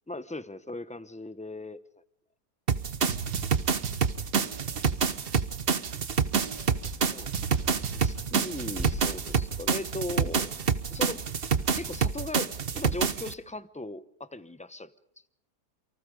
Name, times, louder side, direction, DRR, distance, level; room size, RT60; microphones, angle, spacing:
voice 1, 0.1-1.8 2.9-3.0 7.0-7.3 7.9-11.2 11.8-14.9, left 2 dB, 10° left, 0.5 m, -38 dB
sound 1, 2.7-13.3, right 6 dB, 40° right, 1.1 m, -28 dB
sound 2, 3.1-9.1, right 7 dB, 80° right, 1.8 m, -38 dB
sound 3, 6.4-12.1, right 1 dB, 15° right, 6.2 m, -44 dB
28.5 x 24.5 x 5.2 m
omnidirectional pair, 1.7 m